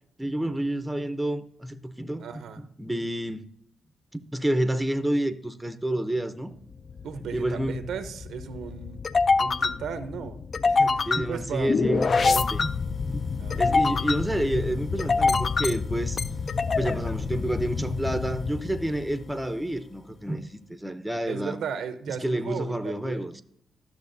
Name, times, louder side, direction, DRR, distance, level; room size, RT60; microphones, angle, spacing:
voice 1, 0.2-2.2 2.6-3.4 4.3-6.5 7.3-7.8 11.1-12.7 13.0-16.2 16.8-21.6 22.2-23.4, right 1 dB, 5° right, 0.6 m, -29 dB
voice 2, 2.2-2.6 7.0-9.0 9.4-10.4 10.7-11.7 13.4-13.9 21.3-23.3, right 7 dB, 85° right, 0.7 m, -36 dB
sound 1, 6.7-19.5, left 4 dB, 45° left, 0.3 m, -26 dB
12.0 x 6.4 x 2.6 m
cardioid pair, 105°, 0 cm